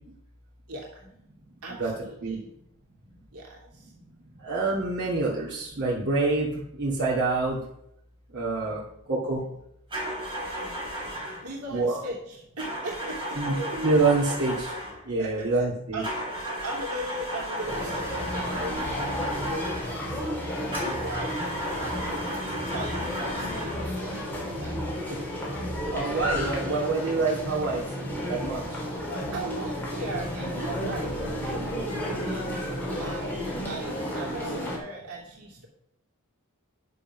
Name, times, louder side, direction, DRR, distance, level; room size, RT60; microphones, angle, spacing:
voice 1, 0.7-1.1 1.6-2.5 3.3-3.9 8.6-8.8 10.6-10.8 11.4-13.4 15.2-15.7 15.9-24.7 29.3-35.7, right 2 dB, 75° right, -3 dB, 2.8 m, -39 dB
voice 2, 4.4-6.5 6.8-7.6 8.3-8.8 9.1-9.4 11.7-12.0 13.4-14.7 15.1-16.0 25.9-27.8 28.3-28.6, right 3 dB, 50° right, -6 dB, 2.5 m, -26 dB
sound 1, 9.9-11.5 12.6-15.0 16.0-20.0 20.7-23.9, equal, 20° right, 5.0 m, -34 dB
sound 2, 17.7-34.8, equal, 10° left, 3.5 m, -32 dB
10.5 x 6.9 x 6.1 m, 0.75 s
head